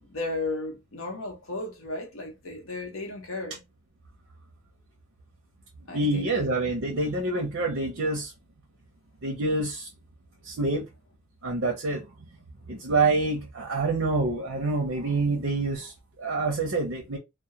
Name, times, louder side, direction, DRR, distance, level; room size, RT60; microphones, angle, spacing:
voice 1, 0.0-3.6 5.9-6.3, left 2 dB, 80° left, 0.9 m, -34 dB
voice 2, 5.9-8.3 9.2-9.9 10.4-10.9 11.4-12.1 12.7-17.2, right 3 dB, 65° right, 0.6 m, -27 dB
2.3 x 2.1 x 2.8 m
head